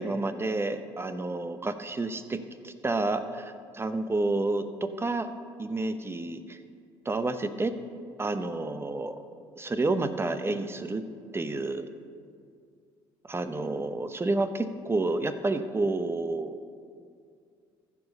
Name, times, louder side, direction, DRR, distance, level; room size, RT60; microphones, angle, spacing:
voice 1, 0.0-2.4 2.6-5.3 5.6-6.6 7.0-7.7 8.2-9.2 9.6-11.0 11.3-11.9 13.2-16.6, right 2 dB, 20° right, 10 dB, 0.8 m, -30 dB
14.5 x 4.9 x 5.4 m, 2.2 s
hypercardioid pair, 65°, 11 cm